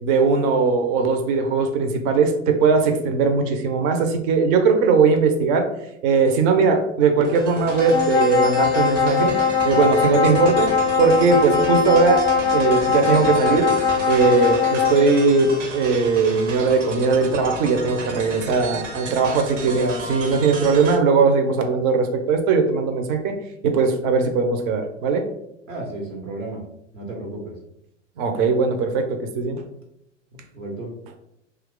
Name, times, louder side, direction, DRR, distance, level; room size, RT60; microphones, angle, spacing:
voice 1, 0.0-5.7 6.0-9.3 9.6-10.7 11.0-12.3 12.5-13.7 14.1-23.4 23.6-25.3 28.2-29.6, right 4 dB, 40° right, 5 dB, 0.5 m, -19 dB
sound 1, 7.2-21.0, right 2 dB, 70° right, 0.9 m, -33 dB
sound 2, 7.7-15.1, left 6 dB, 10° left, 0.4 m, -21 dB
voice 2, 25.7-26.6 26.9-27.6 30.5-30.9, right 2 dB, 90° right, 0 dB, 1.1 m, -33 dB
2.8 x 2.3 x 3.6 m, 0.79 s
hypercardioid pair, 95°, 38 cm